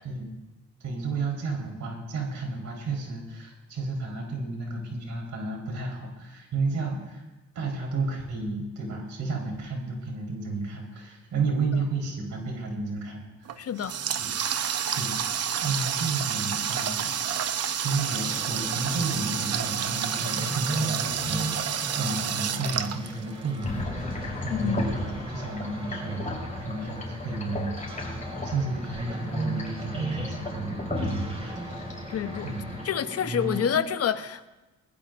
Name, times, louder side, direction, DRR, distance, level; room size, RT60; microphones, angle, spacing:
voice 1, 0.8-7.2 7.5-13.6 14.9-15.3 15.6-17.1 17.7-28.1 28.4-31.6 32.4-32.6, right 3 dB, 70° right, -1 dB, 4.4 m, -32 dB
Water tap faucet, 13.4-23.6, right 8 dB, 55° right, 0.9 m, -29 dB
voice 2, 13.6-13.9 24.5-24.9 32.1-32.5 32.8-34.5, left 8 dB, 55° left, 11 dB, 1.0 m, -28 dB
sound 1, 18.1-33.8, right 2 dB, 20° right, 2.4 m, -37 dB
sound 2, 23.6-32.8, left 3 dB, 25° left, 5.9 m, -35 dB
22.0 x 20.5 x 2.6 m, 1.1 s
cardioid pair, 90°, 30 cm